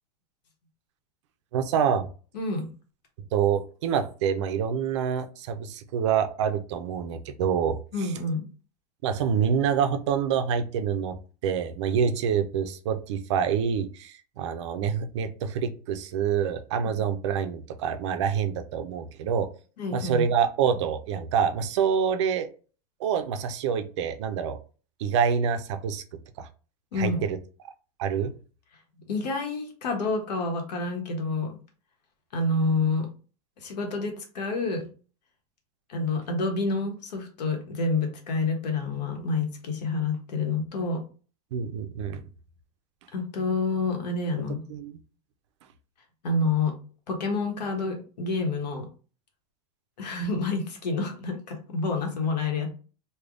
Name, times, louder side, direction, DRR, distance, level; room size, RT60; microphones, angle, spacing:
voice 1, 1.5-2.1 3.3-8.1 9.0-11.1 11.4-19.5 19.9-22.5 23.0-24.6 25.0-26.0 26.4-26.5 26.9-27.4 28.0-28.3 41.5-42.2 44.7-45.0, right 7 dB, 45° right, 9 dB, 0.4 m, -26 dB
voice 2, 2.3-2.7 7.9-8.4 16.9-17.1 19.8-20.2 26.9-27.2 29.1-31.6 32.3-33.1 33.6-34.8 35.9-41.0 43.1-44.6 46.2-46.7 47.1-48.9 50.0-52.7, left 3 dB, 85° left, 3 dB, 1.2 m, -28 dB
3.4 x 2.2 x 3.6 m, 0.38 s
supercardioid pair, 175°, 21 cm